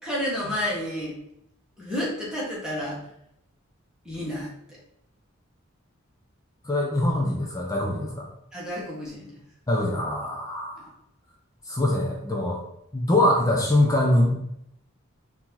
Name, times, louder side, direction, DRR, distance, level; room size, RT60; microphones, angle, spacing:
voice 1, 0.0-1.1 1.8-3.0 4.0-4.8 8.5-9.4 10.8-10.9, left 1 dB, 5° right, -6 dB, 1.4 m, -31 dB
voice 2, 6.6-8.3 9.7-10.9 11.7-12.6 12.9-14.3, left 1 dB, 15° left, -2 dB, 0.6 m, -23 dB
4.5 x 2.9 x 3.9 m, 0.77 s
head